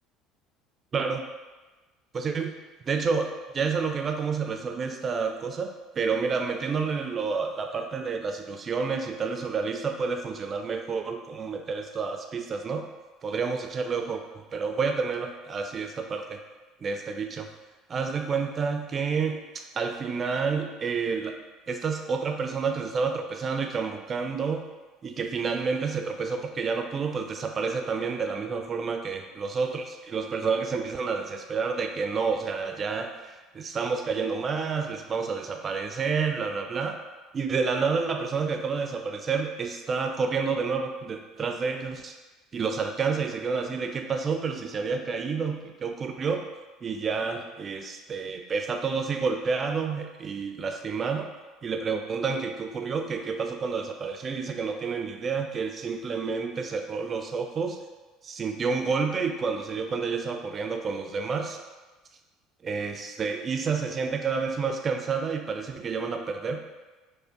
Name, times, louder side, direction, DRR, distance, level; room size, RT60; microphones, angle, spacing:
voice 1, 2.1-12.8 13.2-14.2 14.5-16.4 16.8-17.5 17.9-21.4 21.7-24.6 25.0-37.0 37.3-42.1 42.5-46.4 46.8-51.3 51.6-57.8 58.2-61.6 62.6-66.6, right 5 dB, 35° right, 5 dB, 0.4 m, -29 dB
5.0 x 2.1 x 2.5 m, 1.2 s
hypercardioid pair, 65°, 0 cm